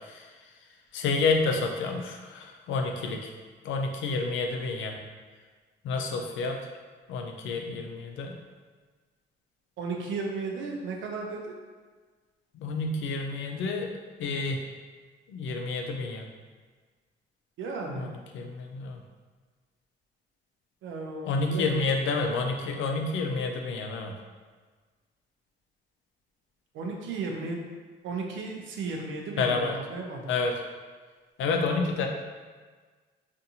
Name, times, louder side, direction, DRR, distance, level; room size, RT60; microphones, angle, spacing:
voice 1, 0.9-3.3 3.6-4.9 5.8-6.6 7.1-8.3 12.6-13.9 14.2-14.6 15.3-16.2 17.9-18.1 18.3-19.0 21.2-24.1 29.4-29.7 30.3-30.5 31.4-32.1, left 3 dB, 75° left, 2 dB, 0.4 m, -29 dB
voice 2, 9.8-11.6 17.6-18.1 20.8-21.7 26.7-27.6 28.0-30.3, right 4 dB, 75° right, 1 dB, 0.5 m, -34 dB
2.6 x 2.5 x 2.7 m, 1.4 s
cardioid pair, 90°, 20 cm